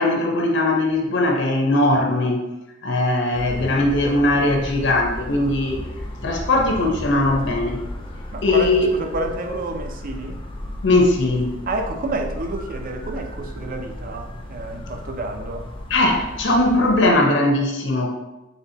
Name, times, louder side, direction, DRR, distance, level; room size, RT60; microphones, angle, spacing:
voice 1, 0.0-2.4 2.8-5.8 6.2-7.8 8.4-8.9 10.8-11.5 15.9-18.1, left 2 dB, 65° left, 1 dB, 0.8 m, -19 dB
sound 1, 3.3-17.1, left 1 dB, 25° left, 0.5 m, -34 dB
voice 2, 8.3-10.4 11.7-15.7, right 2 dB, 45° right, 5 dB, 0.5 m, -29 dB
4.2 x 3.8 x 2.7 m, 0.95 s
head